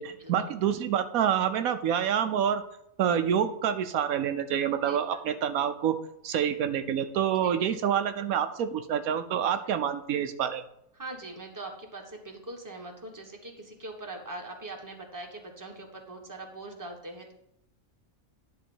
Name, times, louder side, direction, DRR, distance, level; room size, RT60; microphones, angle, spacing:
voice 1, 0.0-2.6 3.0-6.0 6.2-10.6, right 9 dB, 90° right, 9 dB, 1.1 m, -27 dB
voice 2, 4.8-5.2 7.4-7.5 11.0-17.3, right 2 dB, 15° right, 1 dB, 1.3 m, -42 dB
10.5 x 3.9 x 7.1 m, 0.77 s
omnidirectional pair, 1.5 m